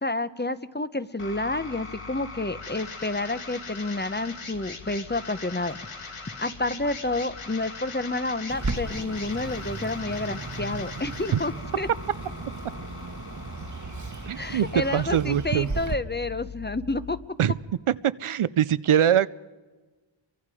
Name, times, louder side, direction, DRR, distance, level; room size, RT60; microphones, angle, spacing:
voice 1, 0.0-5.8 6.4-11.9 14.4-17.2, left 2 dB, 20° left, 13 dB, 0.8 m, -29 dB
sound 1, 1.2-17.2, left 4 dB, 80° left, 2.0 m, -41 dB
Bird, 8.5-15.9, right 3 dB, 35° right, 1.3 m, -35 dB
voice 2, 14.3-14.7 14.9-15.7 17.4-17.6 17.9-18.0 18.2-19.3, right 10 dB, 75° right, 17 dB, 0.6 m, -22 dB
29.5 x 24.0 x 4.9 m, 1.3 s
wide cardioid pair, 55°, 50 cm